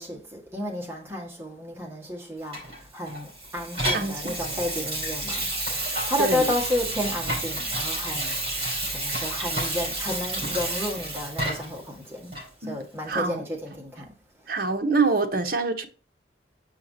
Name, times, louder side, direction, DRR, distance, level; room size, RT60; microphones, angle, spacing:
voice 1, 0.0-12.3 12.6-14.1 14.4-14.6, left 1 dB, 15° right, 1.5 m, -32 dB
Water tap faucet / Sink (filling or washing), 2.5-11.8 12.3-12.5, right 1 dB, 30° right, 3.4 m, -30 dB
voice 2, 3.9-4.3 6.2-6.4 12.6-12.8 13.1-13.4 14.5-15.9, right 4 dB, 50° right, 0.8 m, -25 dB
6.5 x 5.6 x 2.7 m
head